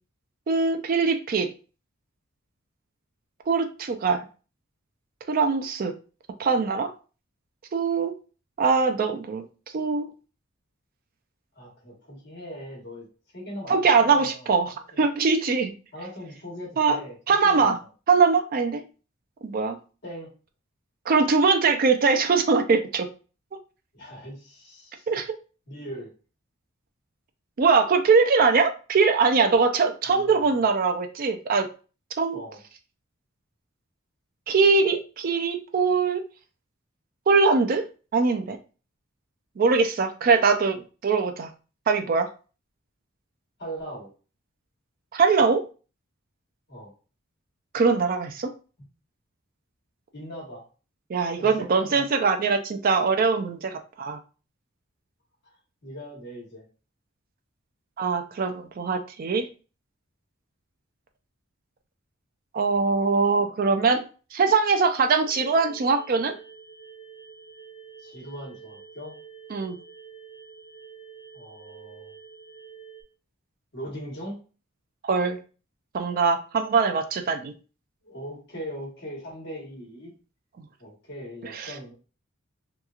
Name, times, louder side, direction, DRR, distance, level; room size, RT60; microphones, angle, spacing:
voice 1, 0.5-1.5 3.5-4.2 5.3-5.9 6.4-6.9 7.7-8.1 8.6-9.4 9.7-10.1 13.7-15.7 16.8-17.0 17.3-17.8 18.1-18.8 19.4-19.8 21.1-23.1 25.1-25.3 27.6-31.7 32.2-32.4 34.5-36.2 37.3-37.8 38.1-38.6 39.6-41.5 41.9-42.3 45.1-45.6 47.7-48.5 51.1-54.2 58.0-59.5 62.5-64.0 64.3-66.4 69.5-69.8 75.0-75.4 75.9-77.5 81.5-81.7, right 4 dB, 45° right, 7 dB, 0.3 m, -22 dB
voice 2, 11.5-13.1 13.3-14.5 14.9-15.0 15.9-17.7 20.0-20.3 23.9-25.1 25.7-26.1 30.0-30.7 32.3-32.6 43.6-44.1 46.7-46.9 48.8-48.9 50.1-50.6 51.4-52.1 55.8-56.6 68.0-69.2 71.3-72.1 73.7-74.4 78.0-80.1 80.8-81.9, equal, 55° left, -3 dB, 1.2 m, -40 dB
sound 1, 65.2-73.0, right 6 dB, 75° left, 1.0 m, -47 dB
2.9 x 2.2 x 2.4 m, 0.35 s
head